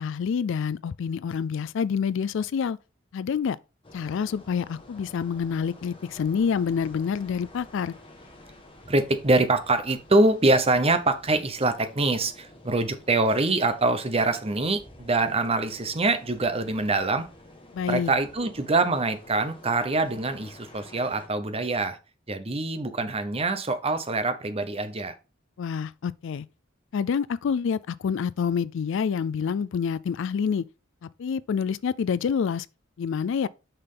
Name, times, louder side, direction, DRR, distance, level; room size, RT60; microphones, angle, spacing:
voice 1, 0.0-2.8 3.1-3.6 3.9-7.9 17.7-18.1 25.6-26.4 26.9-30.6 31.2-32.6 33.0-33.5, left 6 dB, 65° left, 0.3 m, -27 dB
sound 1, 3.8-21.3, left 1 dB, 25° left, 1.7 m, -50 dB
voice 2, 8.9-17.3 17.9-22.0 22.3-25.1, right 2 dB, 30° right, 0.9 m, -24 dB
6.6 x 5.9 x 3.8 m
head